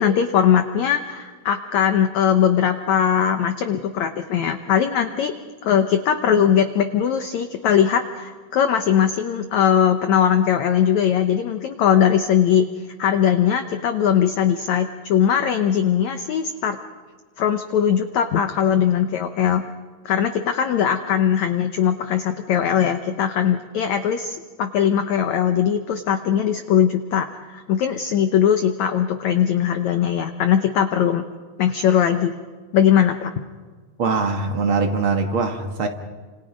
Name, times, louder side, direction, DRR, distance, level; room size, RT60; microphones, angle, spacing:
voice 1, 0.0-5.3 5.6-12.7 13.0-16.8 17.4-19.6 20.0-31.2 31.6-32.4 32.7-33.3, left 8 dB, 80° left, 1.6 m, -20 dB
voice 2, 34.0-35.9, right 4 dB, 50° right, 1.6 m, -22 dB
30.0 x 27.5 x 5.2 m
omnidirectional pair, 4.6 m